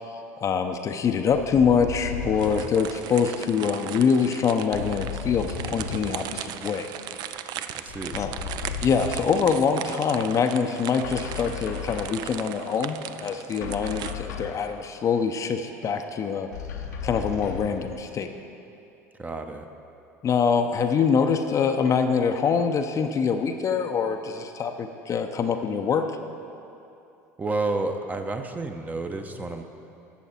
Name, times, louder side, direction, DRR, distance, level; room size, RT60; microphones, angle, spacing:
voice 1, 0.4-6.9 8.1-8.3 8.8-16.5 17.0-18.3 20.2-26.0, left 6 dB, 35° left, 6 dB, 0.6 m, -24 dB
sound 1, 1.3-2.8 4.7-6.2 7.9-9.4 11.0-12.3 13.6-14.6 16.5-17.8, left 6 dB, 80° left, 0.9 m, -35 dB
sound 2, 2.4-14.1, right 10 dB, 50° right, 0.4 m, -38 dB
voice 2, 7.7-8.2 19.2-19.7 27.4-29.6, right 3 dB, 20° right, 6 dB, 0.7 m, -30 dB
11.5 x 7.2 x 4.3 m, 2.7 s
hypercardioid pair, 75°, 9 cm